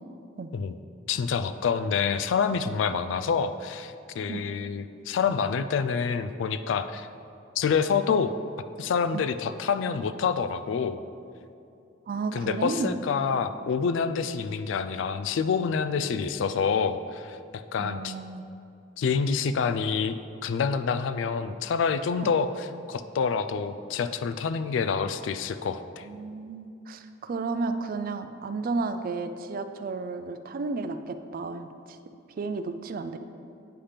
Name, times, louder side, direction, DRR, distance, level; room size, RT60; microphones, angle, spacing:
voice 1, 1.1-7.1 7.6-8.3 8.8-11.0 12.3-18.1 19.0-26.1, left 6 dB, 80° left, 12 dB, 0.3 m, -27 dB
voice 2, 12.1-13.1 14.2-14.4 17.8-18.4 22.2-22.4 26.0-32.0 32.4-33.2, right 3 dB, 50° right, 9 dB, 0.4 m, -33 dB
8.6 x 3.4 x 5.7 m, 2.6 s
head